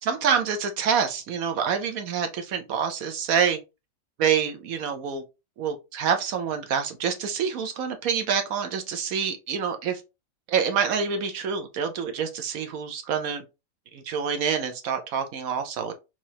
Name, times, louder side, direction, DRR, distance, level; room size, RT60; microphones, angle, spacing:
voice 1, 0.0-3.6 4.2-5.2 5.6-10.0 10.5-13.4 13.9-15.9, right 7 dB, 80° right, 1.2 m, -27 dB
6.0 x 3.0 x 2.8 m
omnidirectional pair, 1.5 m